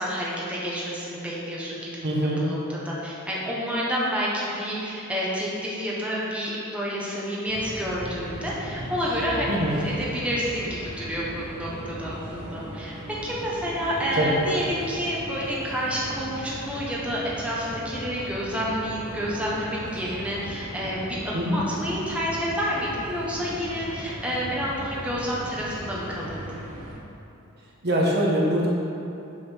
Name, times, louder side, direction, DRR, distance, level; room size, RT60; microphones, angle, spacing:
voice 1, 0.0-1.9 2.4-9.5 9.8-12.9 13.2-26.6, equal, 5° right, -6 dB, 1.3 m, -29 dB
voice 2, 2.0-2.4 9.5-9.8 14.2-14.4 21.3-21.6 27.8-28.7, equal, 50° right, -3 dB, 1.4 m, -23 dB
sound 1, 7.5-27.0, equal, 85° right, 1.5 m, -38 dB
7.0 x 6.6 x 5.9 m, 2.8 s
head